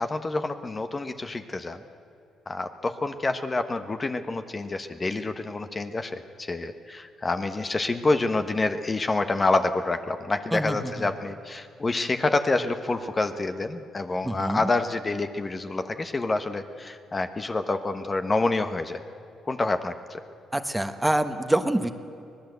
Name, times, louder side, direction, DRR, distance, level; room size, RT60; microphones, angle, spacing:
voice 1, 0.0-1.8 2.5-19.0 19.4-20.2, left 3 dB, 25° left, 8 dB, 1.1 m, -27 dB
voice 2, 10.5-11.1 14.2-14.7 20.5-21.9, right 1 dB, 10° right, 9 dB, 1.2 m, -26 dB
24.5 x 18.5 x 8.1 m, 2.6 s
cardioid pair, 90°, 0 cm